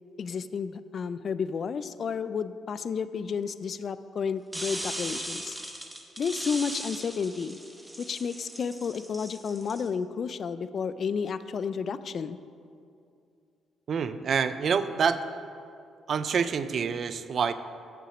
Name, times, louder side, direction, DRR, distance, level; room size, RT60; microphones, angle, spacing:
voice 1, 0.2-5.6 6.2-7.6 8.0-12.4, left 6 dB, 50° left, 14 dB, 0.3 m, -31 dB
sound 1, 4.5-9.9, right 1 dB, 5° right, 0.9 m, -38 dB
voice 2, 13.9-15.2 16.1-17.5, right 6 dB, 55° right, 12 dB, 0.4 m, -27 dB
7.0 x 6.0 x 6.0 m, 2.5 s
cardioid pair, 90°, 0 cm